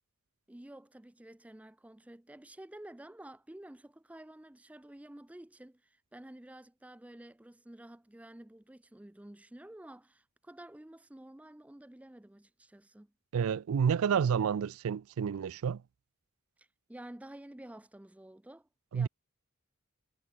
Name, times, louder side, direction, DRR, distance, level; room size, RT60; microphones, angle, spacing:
voice 1, 0.5-13.1 16.6-19.1, right 1 dB, 5° right, 0.4 m, -51 dB
voice 2, 13.3-15.8 18.9-19.1, right 7 dB, 75° right, 0.4 m, -29 dB
head